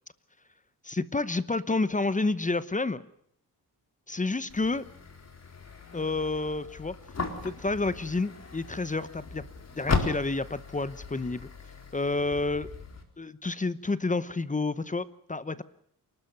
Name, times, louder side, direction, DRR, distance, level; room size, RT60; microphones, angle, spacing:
voice 1, 0.8-3.0 4.1-4.8 5.9-6.9 7.4-9.4 9.8-11.5 11.9-12.7 13.2-15.6, left 3 dB, 20° left, 14 dB, 0.9 m, -29 dB
sound 1, 4.5-13.0, left 4 dB, 40° left, 4.0 m, -37 dB
28.0 x 13.0 x 9.3 m, 0.70 s
cardioid pair, 105°, 39 cm